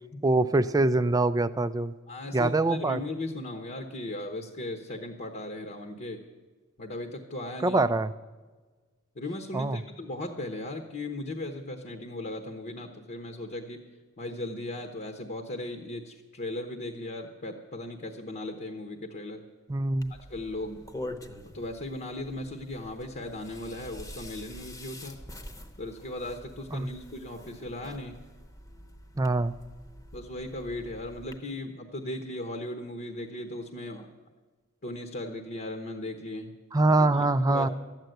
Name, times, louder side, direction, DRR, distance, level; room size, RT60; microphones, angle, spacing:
voice 1, 0.2-1.9 2.3-3.0 7.6-8.1 9.5-9.8 19.7-20.2 26.7-26.9 29.2-29.5 36.7-37.7, right 2 dB, 15° right, 12 dB, 0.3 m, -24 dB
voice 2, 2.1-6.2 6.8-7.8 9.1-13.8 14.2-19.4 20.1-20.9 21.4-25.2 25.8-28.2 30.1-34.1 34.8-36.5 36.9-37.7, left 1 dB, 45° left, 5 dB, 0.9 m, -37 dB
sound 1, 20.0-31.4, left 1 dB, 15° left, 0.9 m, -46 dB
13.0 x 9.0 x 7.8 m, 1.4 s
head